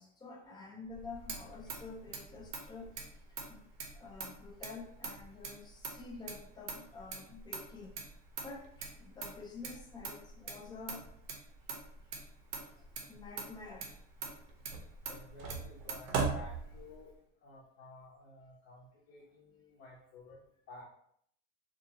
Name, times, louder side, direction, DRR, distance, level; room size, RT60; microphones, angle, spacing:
voice 1, 0.0-3.6 3.9-7.9 8.4-11.1 12.8-13.9, left 4 dB, 15° left, 0 dB, 0.4 m, -49 dB
Motor vehicle (road), 0.9-17.1, right 4 dB, 85° right, 0.8 m, -42 dB
voice 2, 12.0-13.2 14.3-17.1 17.4-20.8, left 2 dB, 55° left, -5 dB, 0.8 m, -55 dB
2.6 x 2.4 x 2.7 m, 0.68 s
cardioid pair, 145°, 30 cm